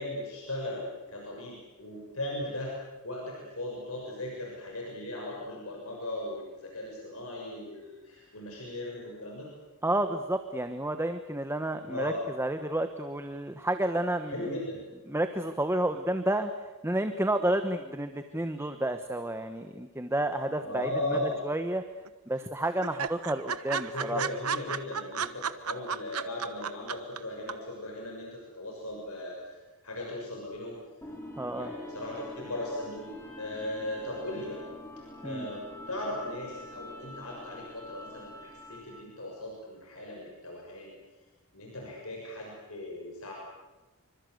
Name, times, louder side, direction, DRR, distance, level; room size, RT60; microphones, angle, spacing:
voice 1, 0.0-2.7 3.0-9.5 11.8-12.3 14.3-14.8 20.6-21.4 23.9-29.6 29.8-30.8 31.5-33.1 33.4-34.6 35.2-40.9 41.5-43.3, left 1 dB, 70° left, -2 dB, 6.7 m, -37 dB
voice 2, 9.8-14.6 15.1-16.5 16.8-21.8 22.3-24.2 31.4-31.7 35.2-35.5, right 1 dB, 10° right, 8 dB, 1.2 m, -30 dB
sound 1, 21.1-21.8 22.1-22.2 22.4-22.5 22.8-27.2 27.5-27.6, right 6 dB, 75° right, 1.2 m, -33 dB
sound 2, 31.0-39.2, left 1 dB, 10° left, 5.5 m, -45 dB
26.5 x 25.5 x 8.0 m, 1.1 s
head